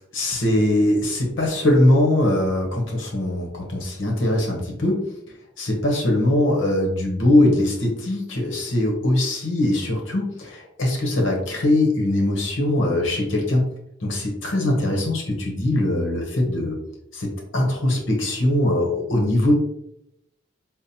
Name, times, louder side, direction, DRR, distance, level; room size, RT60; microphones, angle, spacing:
voice 1, 0.1-5.0 5.6-13.7 14.0-16.8 17.1-19.5, left 1 dB, 70° left, 0 dB, 0.8 m, -21 dB
5.5 x 2.0 x 2.7 m, 0.78 s
head